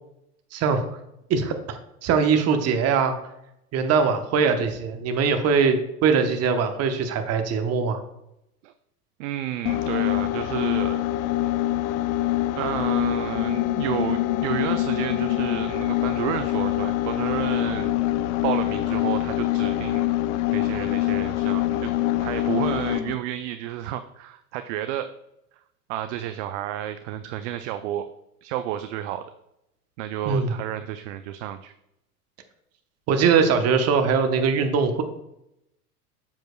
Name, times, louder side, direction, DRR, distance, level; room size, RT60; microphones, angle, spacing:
voice 1, 0.5-0.9 1.3-3.1 3.7-5.8 6.0-8.0 30.3-30.5 33.1-35.0, right 5 dB, 35° right, 7 dB, 1.0 m, -21 dB
voice 2, 9.2-11.0 12.6-17.9 18.4-20.0 20.5-21.9 22.2-25.1 25.9-28.0 28.4-29.2 30.0-31.7, right 12 dB, 50° right, 9 dB, 0.5 m, -31 dB
sound 1, 9.7-23.2, left 14 dB, 50° left, 0.6 m, -25 dB
7.6 x 7.2 x 2.3 m, 0.84 s
hypercardioid pair, 95°, 46 cm